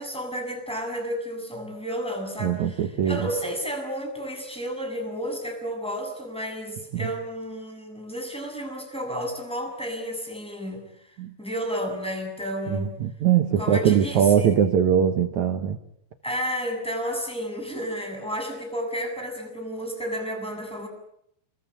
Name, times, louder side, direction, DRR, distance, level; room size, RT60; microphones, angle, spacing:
voice 1, 0.0-10.9 11.4-13.0 13.6-14.6 16.2-20.9, equal, ahead, 3 dB, 7.3 m, -32 dB
voice 2, 2.4-3.3 6.9-7.1 11.2-11.3 12.7-15.8, right 8 dB, 65° right, 7 dB, 1.9 m, -22 dB
29.5 x 21.5 x 8.5 m, 0.74 s
omnidirectional pair, 5.1 m